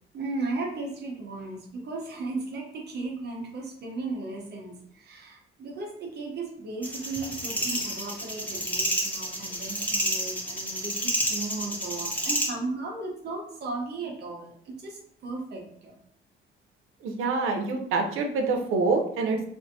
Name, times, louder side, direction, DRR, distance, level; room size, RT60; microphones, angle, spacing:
voice 1, 0.1-15.9, right 3 dB, 55° right, 0 dB, 0.9 m, -36 dB
sound 1, 6.8-12.5, equal, 10° left, 0.9 m, -29 dB
voice 2, 17.0-19.5, right 3 dB, 85° right, 3 dB, 0.7 m, -26 dB
4.6 x 2.6 x 2.7 m, 0.67 s
cardioid pair, 140°, 21 cm